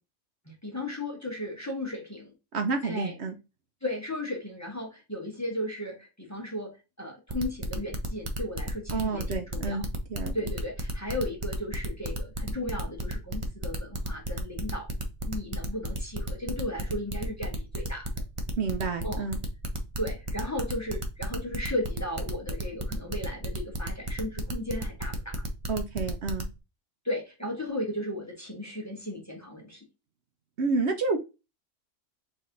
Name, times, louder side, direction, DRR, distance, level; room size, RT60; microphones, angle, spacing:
voice 1, 0.4-2.3 2.8-3.1 3.8-6.7 7.0-9.8 10.3-14.9 15.2-18.1 19.0-19.3 20.0-25.5 27.0-29.8, left 1 dB, 15° left, 0 dB, 1.2 m, -35 dB
voice 2, 2.5-3.4 8.9-10.3 18.6-19.4 25.7-26.5 30.6-31.2, right 4 dB, 60° right, 5 dB, 0.9 m, -29 dB
sound 1, 7.3-26.5, right 2 dB, 30° right, 0.7 m, -34 dB
4.2 x 3.2 x 3.8 m, 0.27 s
omnidirectional pair, 1.3 m